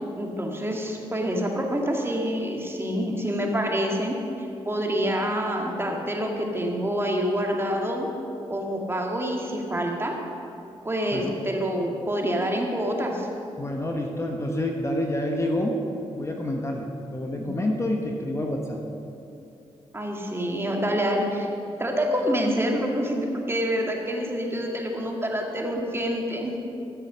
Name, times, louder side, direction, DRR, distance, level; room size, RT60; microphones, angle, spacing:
voice 1, 0.2-8.1 8.5-10.2 10.8-13.3 19.9-21.5 21.8-26.5, equal, 20° right, 0 dB, 2.1 m, -27 dB
voice 2, 13.6-15.8 16.1-18.8, left 1 dB, 25° left, 1 dB, 1.3 m, -28 dB
13.0 x 7.5 x 6.3 m, 2.7 s
cardioid pair, 65°, 12 cm